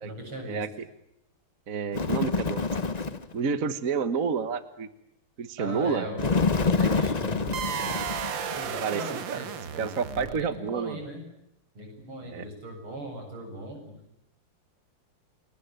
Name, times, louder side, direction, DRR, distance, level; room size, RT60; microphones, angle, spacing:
voice 1, 0.0-0.6 5.6-6.4 6.8-8.1 8.5-11.2 11.7-14.0, right 1 dB, 80° right, 4 dB, 8.6 m, -39 dB
voice 2, 1.7-2.7 3.3-4.9 5.4-6.1 8.8-9.4 9.8-11.0 12.3-12.5, right 5 dB, 45° right, 12 dB, 1.5 m, -29 dB
Bird, 1.9-3.3 6.2-8.7, left 4 dB, 30° left, 0.7 m, -27 dB
sound 1, 7.5-10.7, right 8 dB, 65° right, 2.0 m, -34 dB
29.5 x 22.0 x 8.9 m, 0.77 s
omnidirectional pair, 2.3 m